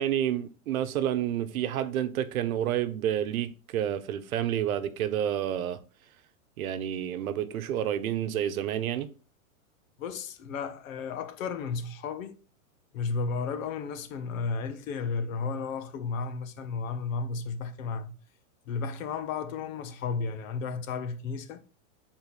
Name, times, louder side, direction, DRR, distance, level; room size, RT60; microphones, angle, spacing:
voice 1, 0.0-5.8 6.6-9.1, right 10 dB, 80° right, 0.9 m, -29 dB
voice 2, 10.0-12.4 12.9-18.1 18.7-21.6, left 5 dB, 70° left, 1.1 m, -33 dB
8.1 x 4.0 x 4.0 m
supercardioid pair, 155°, 41 cm